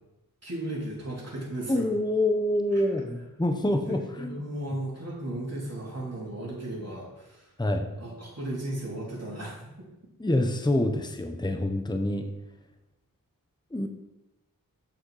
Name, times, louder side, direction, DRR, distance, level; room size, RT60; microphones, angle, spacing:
voice 1, 0.4-1.9 2.7-3.1 3.7-7.5 8.0-9.5, right 1 dB, 45° right, -5 dB, 3.2 m, -35 dB
voice 2, 1.7-4.3 7.6-7.9 10.2-12.3 13.7-13.9, left 1 dB, 10° left, 6 dB, 0.8 m, -26 dB
7.9 x 6.4 x 4.9 m, 0.94 s
wide cardioid pair, 60°, 35 cm